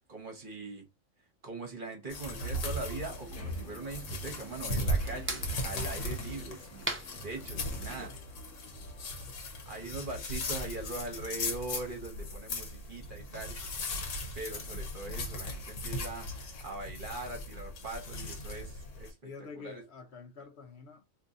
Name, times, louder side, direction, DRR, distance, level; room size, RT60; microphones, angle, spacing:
voice 1, 0.1-0.9 1.4-6.9 7.2-8.2 9.6-13.6 14.4-19.2 19.6-19.8, right 2 dB, 45° right, 1.0 m, -41 dB
sound 1, 2.1-19.1, left 1 dB, 80° left, 1.2 m, -37 dB
sound 2, 3.0-8.1, right 2 dB, 15° right, 0.4 m, -44 dB
sound 3, 3.3-9.3, left 3 dB, 10° left, 0.8 m, -57 dB
voice 2, 10.4-10.7 19.2-21.0, left 5 dB, 60° left, 1.0 m, -48 dB
2.7 x 2.6 x 3.5 m
omnidirectional pair, 1.3 m